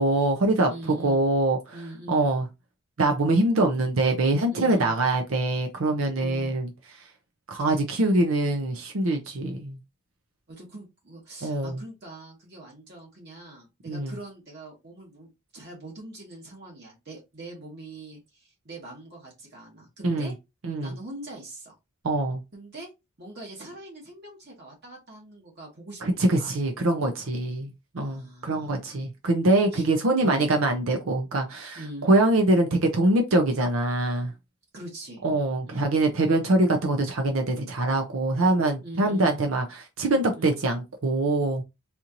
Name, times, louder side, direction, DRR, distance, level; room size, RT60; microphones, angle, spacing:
voice 1, 0.0-1.8 2.1-2.5 3.0-6.7 7.5-9.8 11.4-11.8 13.9-14.1 20.0-20.3 20.6-21.0 22.0-22.4 26.0-34.3 35.2-41.6, right 2 dB, 75° right, 0.6 m, -24 dB
voice 2, 0.7-1.2 1.7-2.3 4.5-4.9 6.1-6.6 7.6-7.7 10.5-20.4 20.8-21.8 22.5-22.9 23.2-26.5 28.0-28.7 29.7-29.9 30.2-30.6 31.7-32.1 34.7-35.2 35.6-36.0 38.8-39.4 40.4-40.6, right 1 dB, 50° right, 1.4 m, -42 dB
4.2 x 2.6 x 2.8 m
head